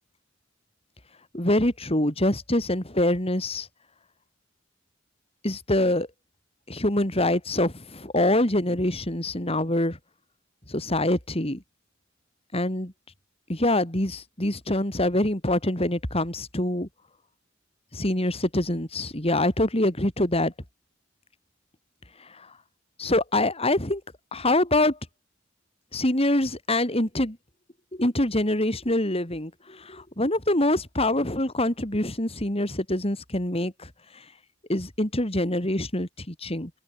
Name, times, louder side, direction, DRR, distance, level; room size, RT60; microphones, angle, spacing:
voice 1, 1.3-3.7 5.4-6.1 6.7-10.0 10.7-11.6 12.5-12.9 13.5-16.9 17.9-20.5 22.2-22.5 23.0-24.0 24.3-25.0 25.9-27.4 27.9-34.2 34.7-36.7, left 1 dB, 30° left, 3.9 m, -25 dB
head